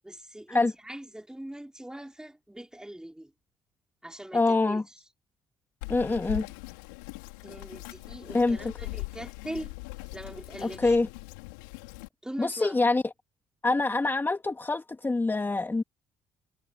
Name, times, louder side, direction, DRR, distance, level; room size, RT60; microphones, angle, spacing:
voice 1, 0.0-3.3 4.0-4.8 7.4-9.7 10.1-10.9 12.2-12.8, right 1 dB, 5° right, 5.1 m, -41 dB
voice 2, 4.3-4.8 5.9-6.5 8.3-8.7 10.6-11.1 12.4-13.0 13.6-15.8, left 3 dB, 20° left, 2.6 m, -25 dB
Bird vocalization bird call bird song, 5.8-12.1, left 27 dB, 85° left, 4.7 m, -41 dB
hypercardioid pair, 50°, 10 cm